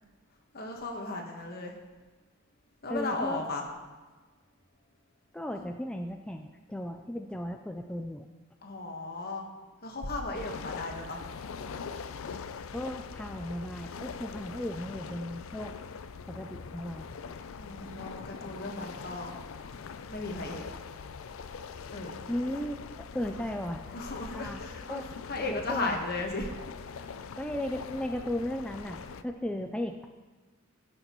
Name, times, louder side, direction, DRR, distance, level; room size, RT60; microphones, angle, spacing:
voice 1, 0.5-1.7 2.8-3.7 5.5-5.6 8.6-9.4 9.8-11.2 17.5-19.3 20.1-20.6 21.9-22.2 23.9-25.0 25.3-26.5 26.9-27.1, left 2 dB, 50° left, 2 dB, 1.4 m, -35 dB
voice 2, 2.9-3.4 5.3-8.3 12.7-15.7 16.3-17.1 22.3-22.8 23.1-23.8 24.3-24.6 24.9-25.1 25.4-26.0 27.4-30.0, left 1 dB, 5° left, 4 dB, 0.3 m, -35 dB
sound 1, 10.3-29.2, left 5 dB, 80° left, 0.4 m, -42 dB
16.0 x 6.5 x 3.1 m, 1.3 s
head